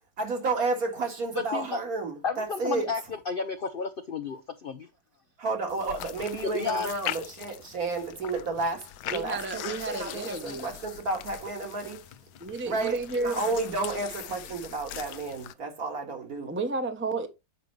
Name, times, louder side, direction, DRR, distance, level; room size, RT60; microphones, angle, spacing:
voice 1, 0.2-2.9 5.4-12.0 12.6-16.5, right 3 dB, 60° right, 2.5 m, -31 dB
voice 2, 2.2-4.9 6.5-7.0, left 5 dB, 60° left, 0.5 m, -32 dB
sound 1, 5.7-15.5, left 12 dB, 85° left, 1.2 m, -41 dB
voice 3, 9.1-10.7 12.4-13.4 16.5-17.3, right 3 dB, 10° right, 0.7 m, -32 dB
8.2 x 5.2 x 3.2 m
omnidirectional pair, 1.7 m